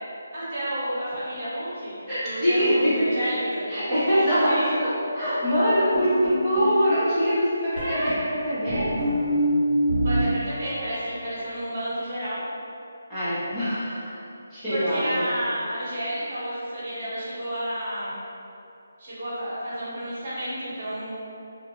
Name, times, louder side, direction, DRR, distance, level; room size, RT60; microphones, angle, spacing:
voice 1, 0.3-1.9 2.2-3.6 4.2-4.7 10.0-12.4 14.7-18.2 19.0-21.2, right 1 dB, 45° right, -10 dB, 1.1 m, -30 dB
voice 2, 2.1-2.9 3.7-4.5 4.8-4.9 5.1-8.9 13.1-14.1 14.5-15.3, equal, 10° left, -17 dB, 0.8 m, -23 dB
sound 1, 5.9-6.8 7.8-8.1 8.7-10.2 10.5-11.1, equal, 30° right, 1.1 m, -25 dB
2.4 x 2.3 x 2.9 m, 2.7 s
figure-of-eight pair, 165°, 0 cm